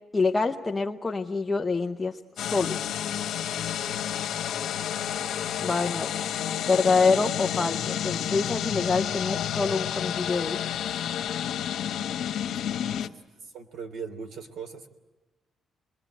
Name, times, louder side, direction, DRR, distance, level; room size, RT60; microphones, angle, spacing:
voice 1, 0.1-2.1 2.4-2.8 5.6-6.1 6.6-10.6, left 4 dB, 15° left, 2 dB, 0.8 m, -26 dB
sound 1, 2.4-13.1, left 10 dB, 85° left, 1.3 m, -30 dB
voice 2, 13.5-14.9, right 5 dB, 80° right, 7 dB, 3.1 m, -39 dB
28.0 x 22.0 x 9.1 m, 1.1 s
cardioid pair, 180°, 0 cm